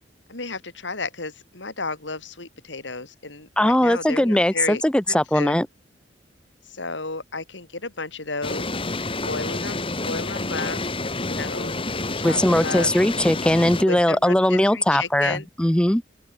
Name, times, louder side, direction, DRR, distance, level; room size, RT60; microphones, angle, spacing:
voice 1, 0.3-4.8 5.1-5.6 6.7-8.7 9.2-10.8 11.2-11.7 12.2-12.9 13.9-15.5, left 3 dB, 75° left, 3.6 m, -32 dB
voice 2, 3.6-5.7 12.2-16.0, left 1 dB, 5° left, 0.5 m, -20 dB
sound 1, 8.4-13.8, left 2 dB, 30° left, 2.7 m, -29 dB
open air
head